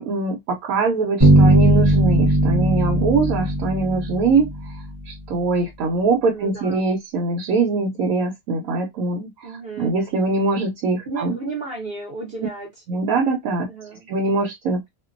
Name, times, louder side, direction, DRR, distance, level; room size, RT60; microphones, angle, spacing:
voice 1, 0.0-11.4 12.9-13.7 14.1-14.9, right 3 dB, 85° right, 1.0 m, -23 dB
sound 1, 1.2-4.9, right 1 dB, 25° right, 0.8 m, -17 dB
voice 2, 6.3-6.8 9.4-9.9 11.0-12.7 13.7-14.1, right 3 dB, 50° right, 0.9 m, -33 dB
2.5 x 2.1 x 2.4 m
omnidirectional pair, 1.4 m